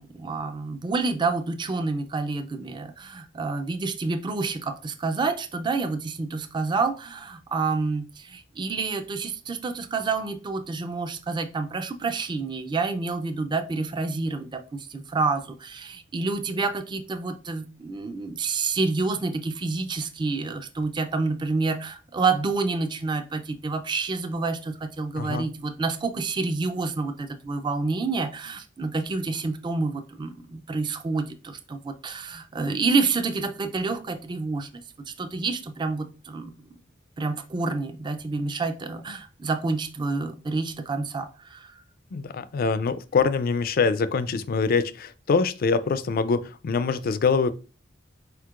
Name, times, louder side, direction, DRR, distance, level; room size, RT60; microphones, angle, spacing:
voice 1, 0.0-34.7 35.1-36.5 37.2-41.8, right 3 dB, 25° right, 0.4 m, -28 dB
voice 2, 42.1-47.5, left 4 dB, 50° left, 0.4 m, -24 dB
4.5 x 4.3 x 2.4 m
head